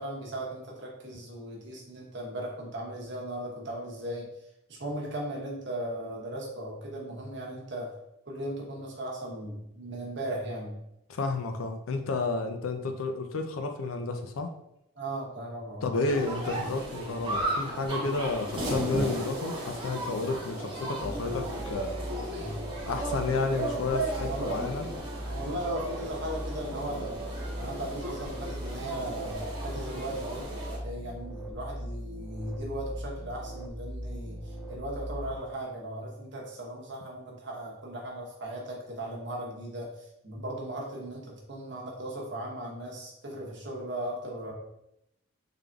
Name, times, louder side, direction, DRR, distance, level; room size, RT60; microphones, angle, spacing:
voice 1, 0.0-4.3 4.7-7.9 8.3-10.7 15.0-16.0 22.3-22.6 24.3-24.8 25.3-27.2 27.6-30.4 30.8-39.9 40.2-44.5, right 1 dB, 60° right, -2 dB, 0.9 m, -37 dB
voice 2, 11.1-14.5 15.8-22.0 22.9-24.9, left 3 dB, 90° left, 6 dB, 0.4 m, -31 dB
sound 1, 16.0-30.8, right 1 dB, 25° right, 0.8 m, -35 dB
sound 2, 21.0-35.4, equal, 5° right, 0.3 m, -39 dB
3.7 x 3.3 x 2.3 m, 0.83 s
head